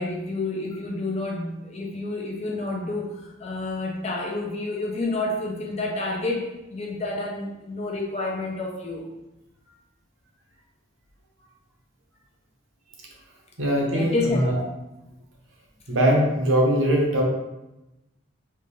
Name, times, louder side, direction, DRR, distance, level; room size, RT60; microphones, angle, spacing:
voice 1, 0.0-9.1 13.9-14.5, left 2 dB, 35° left, -1 dB, 0.6 m, -29 dB
voice 2, 13.6-14.6 15.9-17.2, equal, 85° right, -1 dB, 0.9 m, -21 dB
3.4 x 2.6 x 3.2 m, 0.96 s
head